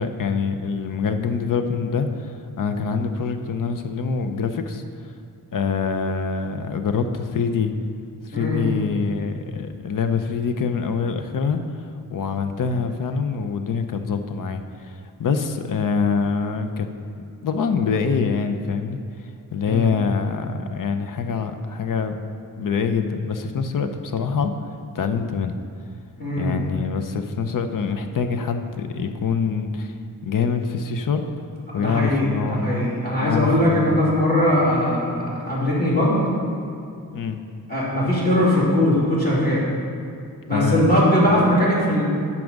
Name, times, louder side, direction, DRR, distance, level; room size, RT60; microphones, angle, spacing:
voice 1, 0.0-4.8 5.5-7.7 8.2-11.6 12.1-16.9 17.4-19.0 19.5-22.1 22.6-24.5 24.9-25.6 26.4-29.9 30.2-31.2 31.7-32.6 33.2-33.9 37.1-37.4 40.5-40.8, left 5 dB, 65° left, 7 dB, 0.7 m, -25 dB
voice 2, 8.3-8.7 19.7-19.9 26.2-26.6 31.7-36.2 37.7-39.6 40.5-42.0, left 1 dB, 25° left, -7 dB, 2.3 m, -20 dB
9.5 x 6.0 x 5.2 m, 2.4 s
wide cardioid pair, 165°, 36 cm